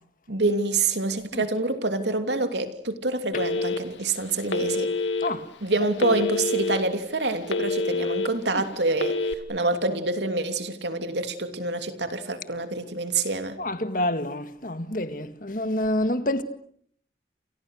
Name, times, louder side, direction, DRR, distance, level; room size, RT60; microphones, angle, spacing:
voice 1, 0.3-4.9 5.6-13.6, right 2 dB, 70° right, 3.0 m, -27 dB
Telephone, 3.3-4.0 4.5-5.3 6.0-6.8 7.2-8.3 8.9-9.3, left 3 dB, 90° left, 2.6 m, -26 dB
voice 2, 13.6-16.4, left 1 dB, 45° left, 1.9 m, -28 dB
29.5 x 28.0 x 6.6 m
head